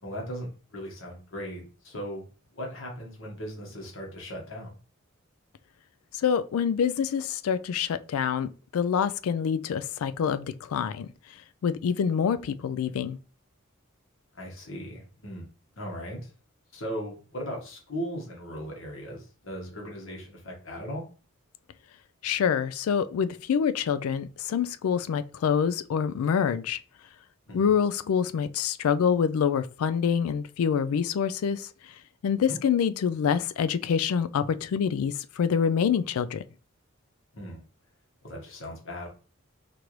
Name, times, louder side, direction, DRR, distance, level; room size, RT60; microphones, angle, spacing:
voice 1, 0.0-2.2 2.5-4.7 14.3-15.5 15.8-16.3 16.7-21.0 27.5-27.7 32.5-32.6 37.3-37.6 38.2-39.1, equal, 65° left, 1.3 m, -38 dB
voice 2, 6.1-11.1 11.6-13.2 22.2-26.8 27.5-31.7 32.2-36.4, left 7 dB, 85° left, 0.3 m, -26 dB
4.5 x 2.6 x 3.1 m
head